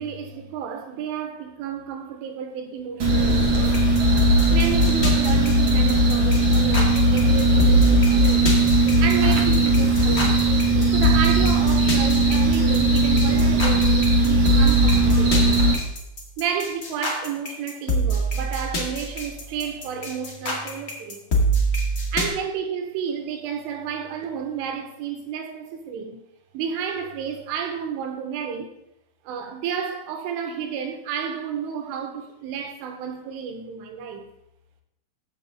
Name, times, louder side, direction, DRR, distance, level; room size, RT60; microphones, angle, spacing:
voice 1, 0.0-8.6 9.0-10.5 10.9-15.6 16.4-21.2 22.1-26.2 26.5-28.7 29.3-34.3, right 7 dB, 80° right, 3.7 m, -31 dB
sound 1, 3.0-15.7, right 1 dB, 60° right, 1.2 m, -18 dB
sound 2, 3.7-22.3, right 2 dB, 65° left, 0.8 m, -25 dB
15.0 x 7.4 x 3.6 m
omnidirectional pair, 5.6 m